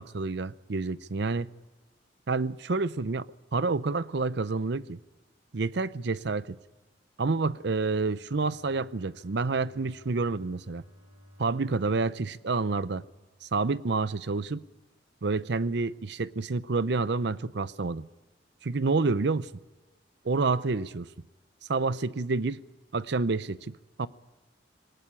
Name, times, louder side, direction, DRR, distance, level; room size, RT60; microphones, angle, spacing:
voice 1, 0.0-1.5 2.3-3.3 3.5-5.0 5.5-6.6 7.2-10.8 11.4-13.0 13.4-14.6 15.2-18.1 18.6-19.5 20.2-21.1 21.7-22.6 22.9-24.1, right 3 dB, 65° right, 16 dB, 0.7 m, -28 dB
Bowed string instrument, 7.8-13.7, equal, 30° right, 5.0 m, -56 dB
19.5 x 19.0 x 9.9 m, 1.2 s
head